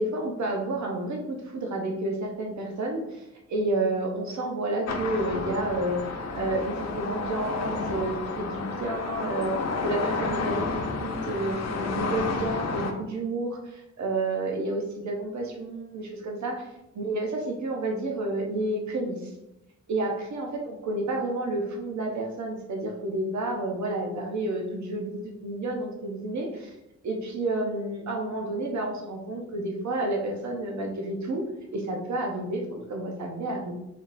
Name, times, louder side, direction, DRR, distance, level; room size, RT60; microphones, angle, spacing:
voice 1, 0.0-6.0 6.3-9.5 9.8-16.6 16.9-19.3 19.9-26.7 27.0-31.4 31.7-33.7, right 2 dB, 75° right, 1 dB, 0.8 m, -30 dB
sound 1, 4.9-12.9, left 3 dB, 65° left, 0.6 m, -31 dB
3.5 x 2.6 x 4.0 m, 0.92 s
wide cardioid pair, 175°, 29 cm